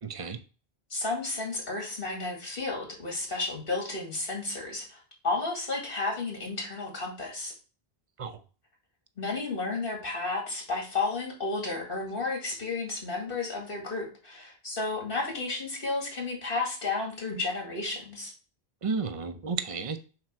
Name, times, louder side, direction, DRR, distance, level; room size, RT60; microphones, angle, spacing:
voice 1, 0.0-0.4 8.2-8.4 18.8-20.0, right 4 dB, 35° right, 0.7 m, -32 dB
voice 2, 0.9-7.5 9.2-18.3, left 3 dB, 60° left, 2.3 m, -32 dB
7.6 x 3.0 x 6.1 m
omnidirectional pair, 1.1 m